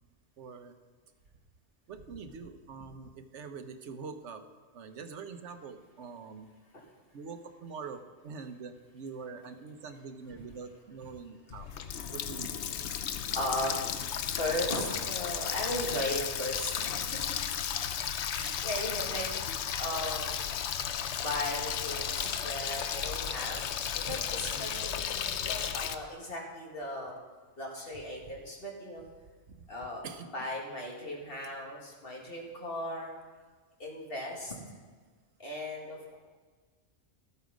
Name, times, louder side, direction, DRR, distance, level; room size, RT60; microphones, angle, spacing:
voice 1, 0.4-0.8 1.9-4.4 4.7-6.5 7.1-11.7 12.1-12.6 24.0-24.3 24.5-24.8 29.5-29.6 30.0-30.5, right 5 dB, 80° right, 8 dB, 1.1 m, -44 dB
Water tap faucet, 11.5-26.0, left 8 dB, 75° left, 0.9 m, -34 dB
voice 2, 13.3-17.2 18.3-19.3 19.8-20.4 21.1-23.6 24.0-27.2 27.6-29.1 29.7-30.1 30.3-33.1 33.8-34.5 35.4-36.2, left 1 dB, 55° left, -1 dB, 2.3 m, -37 dB
13.5 x 8.4 x 5.1 m, 1.4 s
omnidirectional pair, 1.2 m